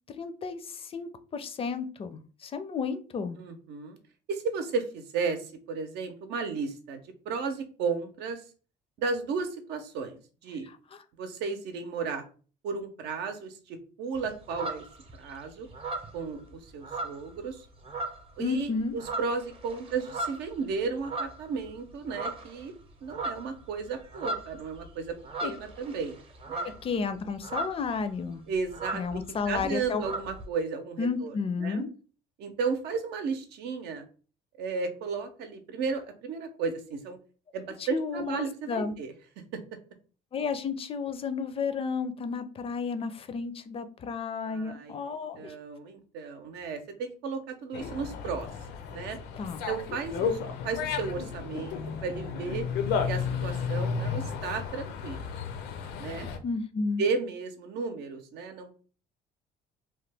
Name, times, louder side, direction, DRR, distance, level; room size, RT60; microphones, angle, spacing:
voice 1, 0.1-3.4 18.4-19.0 25.4-25.5 26.6-28.4 28.9-30.1 31.0-31.9 37.8-38.9 40.3-45.5 49.4-49.6 56.4-57.0, left 5 dB, 35° left, 10 dB, 0.4 m, -32 dB
voice 2, 3.4-4.0 4.3-7.0 7.3-8.4 9.0-10.2 10.4-10.7 11.2-12.2 12.6-14.8 15.2-15.7 16.1-17.6 18.4-22.7 23.0-26.2 26.5-26.7 28.5-29.2 29.5-31.3 31.6-31.8 32.4-34.0 34.6-37.2 37.5-39.1 39.5-39.6 44.4-45.1 45.4-48.5 48.9-49.2 49.7-52.6 53.1-55.3 56.0-56.3 57.0-58.7, right 5 dB, 80° right, 7 dB, 0.7 m, -34 dB
sound 1, 14.1-15.3 15.7-17.5 17.8-18.4 18.8-21.7 22.1-22.6 22.9-28.0 28.2-28.3 28.6-30.5, right 2 dB, 35° right, 0.7 m, -37 dB
Dog, 47.7-56.4, left 6 dB, 80° left, 0.5 m, -33 dB
2.9 x 2.2 x 3.3 m, 0.38 s
cardioid pair, 110°, 17 cm